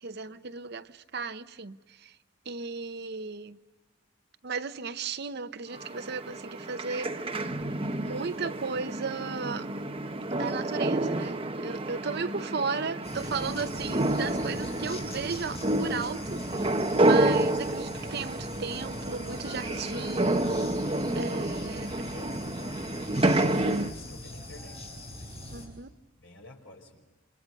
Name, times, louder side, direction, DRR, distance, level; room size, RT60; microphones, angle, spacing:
voice 1, 0.0-2.1 2.5-3.6 4.4-7.3 8.0-9.7 10.3-20.5 21.2-22.1 25.4-25.9, right 5 dB, 55° right, 0.8 m, -35 dB
sound 1, 5.7-23.9, right 1 dB, 25° right, 1.1 m, -29 dB
sound 2, 13.0-25.7, left 1 dB, 30° left, 7.8 m, -43 dB
voice 2, 20.9-25.7 26.2-27.1, left 1 dB, 70° left, 5.1 m, -50 dB
29.0 x 27.5 x 5.3 m
head